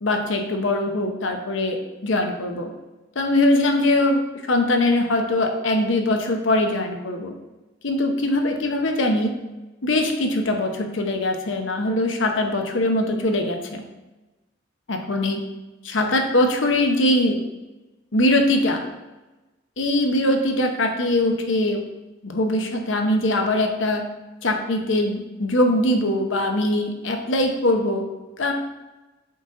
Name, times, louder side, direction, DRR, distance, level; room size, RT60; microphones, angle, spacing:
voice 1, 0.0-2.7 3.2-4.2 4.5-7.3 7.8-9.3 9.8-13.8 14.9-15.4 15.8-17.4 18.1-18.8 19.8-21.8 22.2-24.0 24.4-28.1 28.4-28.5, left 1 dB, 85° left, 4 dB, 0.9 m, -22 dB
7.8 x 4.0 x 3.8 m, 1.1 s
head